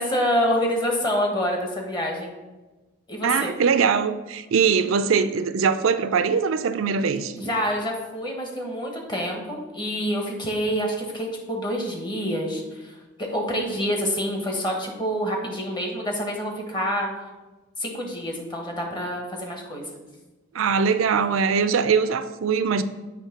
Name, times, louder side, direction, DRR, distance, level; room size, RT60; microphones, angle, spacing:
voice 1, 0.0-2.3 3.1-3.5 7.4-17.1 17.8-20.0, equal, 20° left, 1.2 m, -27 dB
voice 2, 3.2-7.3 20.5-22.8, right 6 dB, 75° right, 0.4 m, -22 dB
7.3 x 3.2 x 5.8 m
head